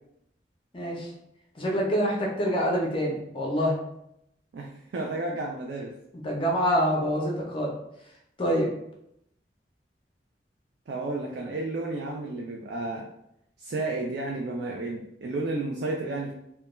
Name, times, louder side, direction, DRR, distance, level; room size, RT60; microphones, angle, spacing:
voice 1, 0.7-1.1 1.6-3.8 6.2-7.7 8.4-8.7, equal, 30° left, -1 dB, 0.5 m, -26 dB
voice 2, 4.5-5.9 10.9-13.1 13.6-16.3, right 2 dB, 70° right, 0 dB, 0.3 m, -32 dB
2.2 x 2.2 x 2.9 m, 0.78 s
head